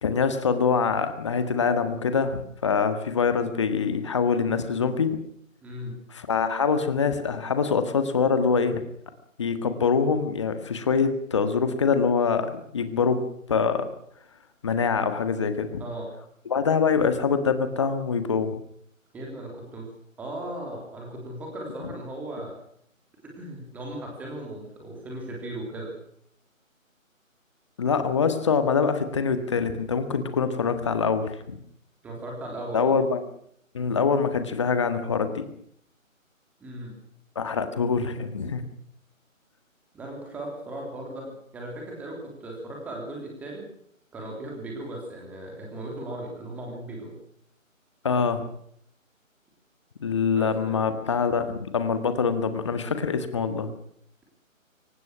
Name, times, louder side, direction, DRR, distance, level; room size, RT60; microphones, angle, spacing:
voice 1, 0.0-5.1 6.1-8.8 9.4-13.9 14.6-15.8 16.5-18.6 27.8-31.6 32.7-33.2 33.7-35.4 37.4-38.6 48.0-48.4 50.0-53.7, left 5 dB, 20° left, 9 dB, 1.7 m, -24 dB
voice 2, 5.6-6.0 15.8-16.1 19.1-19.9 20.2-22.5 23.4-25.9 32.0-32.9 36.6-37.0 39.9-43.7 44.1-47.2 50.4-50.8, right 1 dB, 5° right, 0 dB, 3.3 m, -37 dB
23.5 x 19.5 x 6.2 m, 0.69 s
figure-of-eight pair, 165°, 41 cm